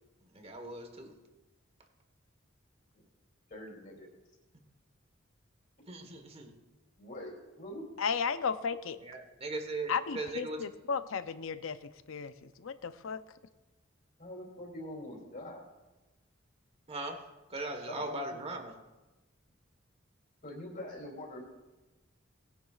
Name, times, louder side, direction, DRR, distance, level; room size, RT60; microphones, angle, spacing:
voice 1, 0.2-1.1 5.9-6.5 9.0-10.7 16.9-18.7, right 2 dB, 30° right, 5 dB, 1.4 m, -39 dB
voice 2, 3.5-4.1 7.0-7.8 14.2-15.6 17.9-18.4 20.4-21.5, left 1 dB, 45° left, 0 dB, 2.9 m, -44 dB
voice 3, 8.0-9.0 9.9-13.2, left 6 dB, 85° left, 12 dB, 0.6 m, -34 dB
19.5 x 10.0 x 2.4 m, 1.1 s
head